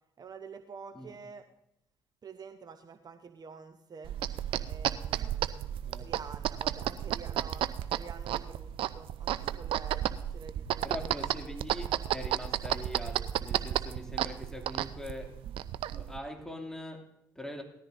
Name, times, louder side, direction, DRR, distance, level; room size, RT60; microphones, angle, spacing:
voice 1, 0.2-1.5 2.2-4.2 4.6-11.2, right 5 dB, 40° right, 8 dB, 0.8 m, -48 dB
sound 1, 4.0-16.2, right 12 dB, 65° right, 0.5 m, -33 dB
voice 2, 10.8-15.4 15.9-17.6, left 1 dB, 5° left, 2 dB, 2.5 m, -42 dB
19.0 x 13.5 x 2.6 m, 0.78 s
hypercardioid pair, 50°, 10 cm